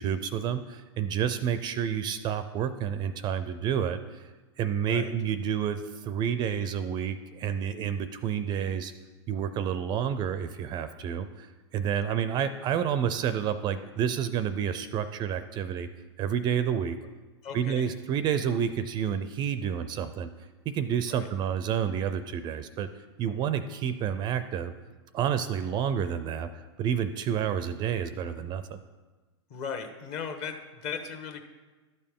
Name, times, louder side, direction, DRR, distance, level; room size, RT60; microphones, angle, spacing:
voice 1, 0.0-4.3 4.6-8.9 9.3-15.9 16.2-17.0 17.5-20.3 20.7-22.9 23.2-24.7 25.1-28.8, right 8 dB, 30° right, 12 dB, 0.4 m, -29 dB
voice 2, 17.4-17.9 21.0-21.3 29.5-31.4, left 6 dB, 45° left, 5 dB, 1.2 m, -37 dB
12.0 x 6.7 x 3.7 m, 1.3 s
hypercardioid pair, 125°, 15 cm